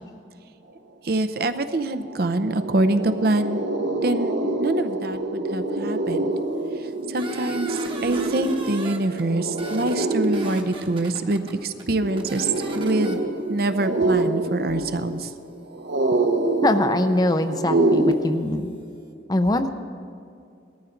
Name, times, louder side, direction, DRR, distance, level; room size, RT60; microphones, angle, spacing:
voice 1, 1.0-3.6 4.0-4.3 4.6-6.3 7.1-13.2 13.5-15.3, right 2 dB, 55° right, 11 dB, 0.6 m, -25 dB
sound 1, 1.6-1.7 1.9-18.1, right 2 dB, 80° right, 1.1 m, -26 dB
sound 2, 7.2-9.2 9.5-11.5 11.8-11.9 12.2-13.1, right 3 dB, 30° right, 1.0 m, -38 dB
voice 2, 16.6-18.7 19.3-19.7, left 1 dB, 20° left, 8 dB, 0.5 m, -22 dB
18.5 x 13.5 x 3.9 m, 2.5 s
head